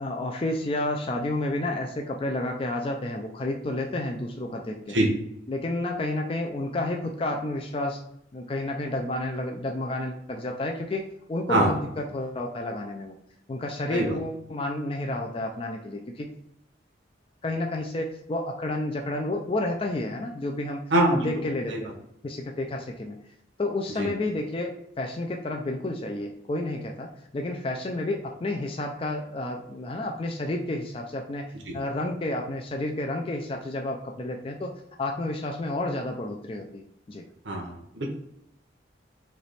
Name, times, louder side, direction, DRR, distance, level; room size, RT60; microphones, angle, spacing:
voice 1, 0.0-5.0 5.5-8.0 8.3-11.0 11.3-13.2 13.5-16.3 17.4-20.8 21.1-21.9 22.2-23.2 23.6-37.2, left 2 dB, 30° left, 2 dB, 0.4 m, -30 dB
voice 2, 20.9-21.3 21.7-21.8 24.0-24.1 37.4-38.1, right 1 dB, 80° right, -1 dB, 0.9 m, -23 dB
3.3 x 2.9 x 4.0 m, 0.77 s
head